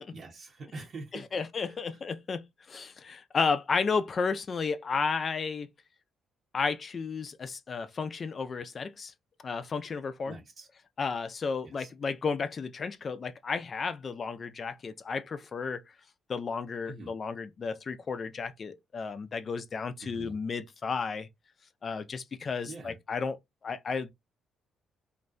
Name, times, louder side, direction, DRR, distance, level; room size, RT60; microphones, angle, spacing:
voice 1, 0.1-1.2 1.7-1.8 10.3-10.7 11.8-11.9 16.9-17.1 20.0-20.4 22.7-22.9, right 3 dB, 50° right, 0.7 m, -44 dB
voice 2, 1.1-5.7 6.5-9.1 9.4-10.4 11.0-15.8 16.3-21.3 21.8-23.4 23.6-24.1, left 5 dB, 45° left, 0.3 m, -33 dB
2.5 x 2.1 x 2.4 m
cardioid pair, 90°, 0 cm